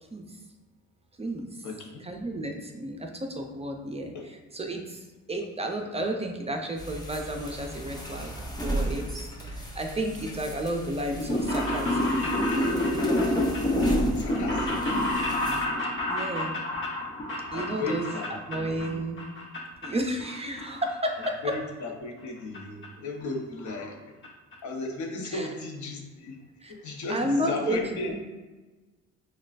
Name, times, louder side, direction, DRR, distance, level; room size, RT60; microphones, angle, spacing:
voice 1, 1.2-1.5 2.0-12.3 16.1-16.6 17.5-19.2 19.8-21.6 25.3-25.5 26.6-26.7 27.1-28.1, right 1 dB, 20° right, 3 dB, 0.5 m, -32 dB
sound 1, 6.8-15.7, right 1 dB, 15° left, 0.8 m, -36 dB
sound 2, 11.1-18.9 19.2-19.9 20.2-21.3 21.5-21.6 22.5-22.6 22.8-22.9 23.2-23.3 23.6-23.9 24.2-24.3 24.5-24.6, left 1 dB, 40° left, 1.2 m, -28 dB
voice 2, 14.2-14.8 17.5-18.3 18.8-19.0 21.4-24.1 24.6-26.4 26.7-28.1, left 2 dB, 70° left, 1 dB, 0.8 m, -35 dB
6.0 x 2.3 x 2.4 m, 1.2 s
cardioid pair, 90°, 30 cm